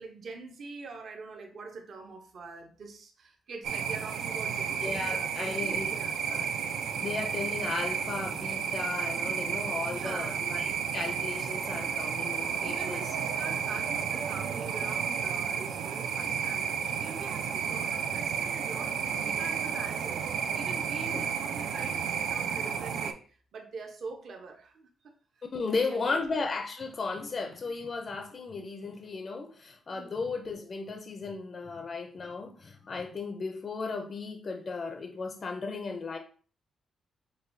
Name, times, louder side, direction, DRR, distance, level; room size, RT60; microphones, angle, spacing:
voice 1, 0.0-6.2 9.7-10.4 12.6-25.1 25.6-26.2 29.9-30.1, right 4 dB, 50° right, 0.7 m, -44 dB
sound 1, 3.6-23.1, right 7 dB, 75° right, 0.4 m, -32 dB
voice 2, 4.8-5.9 6.2-6.5 6.9-13.4 21.1-21.2 25.4-36.2, left 4 dB, 30° left, 0.4 m, -35 dB
6.0 x 2.3 x 2.6 m
wide cardioid pair, 160°, 0 cm